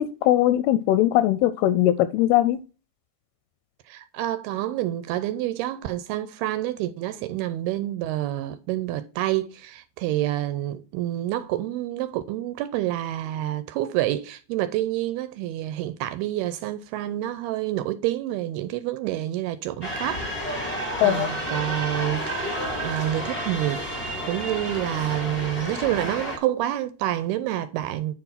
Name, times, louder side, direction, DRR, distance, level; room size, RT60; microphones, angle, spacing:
voice 1, 0.0-2.6 21.0-21.3, left 13 dB, 80° left, 2.3 m, -20 dB
voice 2, 3.9-20.2 20.5-22.6 22.8-28.2, right 14 dB, 80° right, 2.4 m, -28 dB
sound 1, 19.8-26.4, equal, 35° left, 0.8 m, -31 dB
9.7 x 4.6 x 5.6 m
omnidirectional pair, 4.9 m